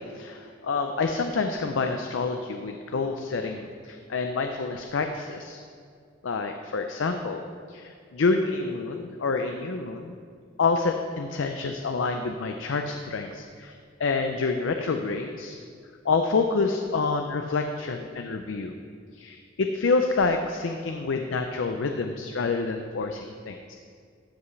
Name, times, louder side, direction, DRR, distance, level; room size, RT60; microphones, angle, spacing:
voice 1, 0.0-5.6 6.2-10.1 10.6-13.7 14.0-15.6 16.0-18.7 19.1-23.7, left 4 dB, 85° left, 5 dB, 0.5 m, -28 dB
12.5 x 8.1 x 3.2 m, 2.2 s
head